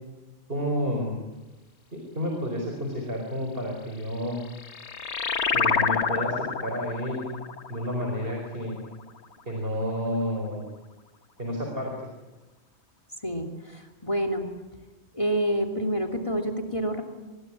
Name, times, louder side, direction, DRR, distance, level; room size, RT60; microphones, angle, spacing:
voice 1, 0.5-1.2 1.9-4.4 5.5-7.3 7.7-8.8 9.5-10.6 11.4-12.1, equal, 45° right, 1 dB, 4.9 m, -30 dB
sound 1, 4.2-9.3, left 5 dB, 60° left, 1.6 m, -29 dB
voice 2, 13.2-14.5 15.1-17.0, equal, 25° left, 4 dB, 2.8 m, -28 dB
26.0 x 21.0 x 10.0 m, 1.1 s
omnidirectional pair, 1.3 m